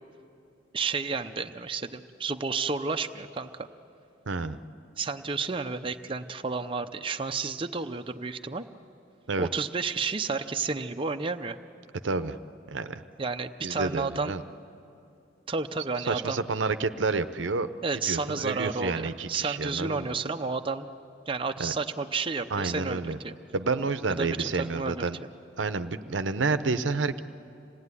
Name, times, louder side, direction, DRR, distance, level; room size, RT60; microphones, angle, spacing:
voice 1, 0.7-3.7 5.0-8.6 9.4-11.6 13.2-14.4 15.5-16.4 17.8-20.9 21.3-23.3 24.2-25.3, right 4 dB, 30° right, 6 dB, 0.6 m, -31 dB
voice 2, 4.3-4.6 9.3-9.5 12.0-12.4 12.7-13.0 13.6-14.4 16.1-17.7 18.1-20.1 21.6-21.7 22.5-23.2 23.5-25.2 25.6-27.2, right 4 dB, 85° right, 11 dB, 0.7 m, -29 dB
26.0 x 17.5 x 9.7 m, 2.7 s
head